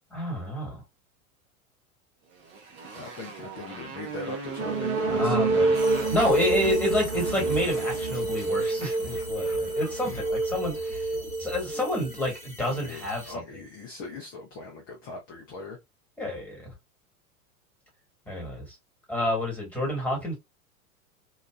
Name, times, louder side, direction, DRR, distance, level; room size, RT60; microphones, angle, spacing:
voice 1, 0.1-0.8 5.1-5.7 6.1-11.1 11.4-13.4 16.2-16.7 18.3-18.7 19.1-20.4, left 1 dB, 5° left, 1.4 m, -29 dB
Motorcycle, 2.3-9.7, right 5 dB, 30° right, 0.7 m, -39 dB
voice 2, 2.9-5.8 10.0-10.2 12.6-15.8, left 2 dB, 20° left, 0.5 m, -40 dB
sound 1, 4.6-12.3, right 3 dB, 70° right, 0.9 m, -27 dB
sound 2, 5.7-13.3, equal, 85° left, 0.9 m, -40 dB
2.8 x 2.3 x 2.3 m
figure-of-eight pair, 90°, 44 cm